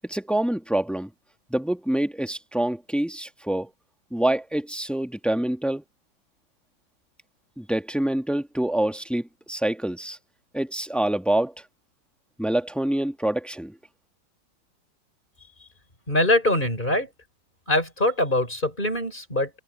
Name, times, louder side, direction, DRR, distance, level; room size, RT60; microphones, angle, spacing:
voice 1, 0.0-1.1 1.5-3.7 4.1-5.8 7.6-10.2 10.5-11.5 12.4-13.7, right 1 dB, ahead, 0.9 m, -26 dB
voice 2, 16.1-17.1 17.7-19.5, left 1 dB, 25° left, 5.3 m, -23 dB
omnidirectional pair, 2.1 m